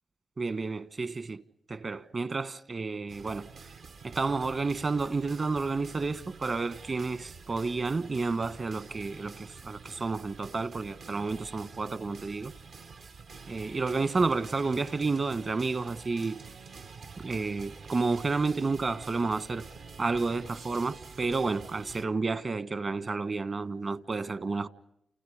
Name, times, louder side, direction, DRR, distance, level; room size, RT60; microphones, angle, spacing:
voice 1, 0.4-1.4 1.7-3.5 4.0-12.5 13.5-16.4 17.2-19.6 20.0-24.7, right 3 dB, 55° right, 1.4 m, -31 dB
sound 1, 3.1-22.1, right 5 dB, 75° right, 1.0 m, -47 dB
30.0 x 29.5 x 5.0 m
supercardioid pair, 45°, 0 cm